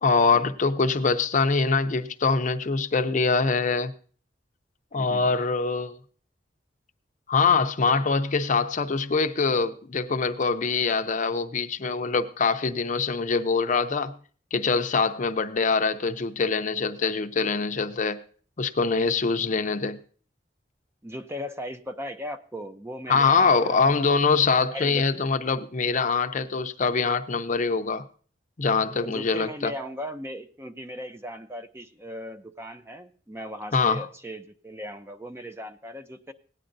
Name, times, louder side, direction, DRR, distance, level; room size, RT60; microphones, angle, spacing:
voice 1, 0.0-3.9 4.9-5.9 7.3-14.1 14.5-18.2 18.6-20.0 23.1-28.0 28.6-29.7 33.7-34.1, left 4 dB, 45° left, 0.6 m, -24 dB
voice 2, 4.9-5.4 21.0-23.8 24.7-25.0 28.9-36.3, equal, 15° right, 0.6 m, -38 dB
17.5 x 9.9 x 2.6 m
head